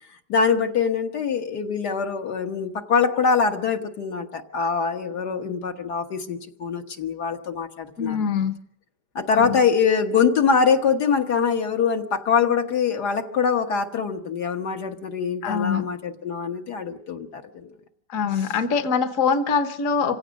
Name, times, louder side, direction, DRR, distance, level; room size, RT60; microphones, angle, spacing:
voice 1, 0.3-8.3 9.2-17.7, left 6 dB, 75° left, 4 dB, 2.0 m, -23 dB
voice 2, 8.0-8.6 9.4-9.6 15.4-15.8 18.1-20.2, left 6 dB, 55° left, 8 dB, 1.4 m, -23 dB
26.5 x 16.5 x 6.4 m, 0.67 s
omnidirectional pair, 1.8 m